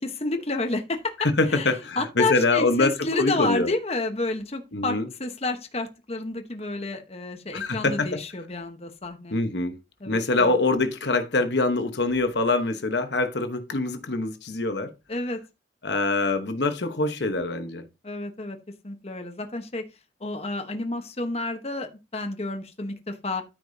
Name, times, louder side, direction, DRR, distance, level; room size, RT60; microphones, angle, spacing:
voice 1, 0.0-9.4 10.0-10.5 15.1-15.4 18.0-18.6 18.8-19.8 20.2-23.4, left 2 dB, 35° left, 1.1 m, -30 dB
voice 2, 1.2-3.7 4.7-5.1 7.5-8.2 9.3-9.8 10.1-14.9 15.8-17.9, left 3 dB, 70° left, 1.1 m, -24 dB
13.5 x 5.1 x 2.8 m
head